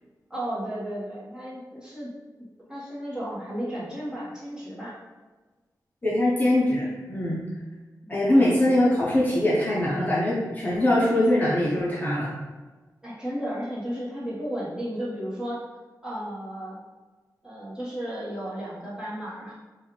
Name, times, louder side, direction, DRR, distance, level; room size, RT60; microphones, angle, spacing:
voice 1, 0.3-2.1 2.7-4.9 8.0-8.4 13.0-15.6 16.0-16.8 17.4-19.5, equal, 10° right, -8 dB, 1.2 m, -34 dB
voice 2, 6.0-7.4 8.1-12.4, left 1 dB, 25° left, -7 dB, 0.6 m, -22 dB
5.3 x 2.4 x 3.1 m, 1.3 s
wide cardioid pair, 165°, 7 cm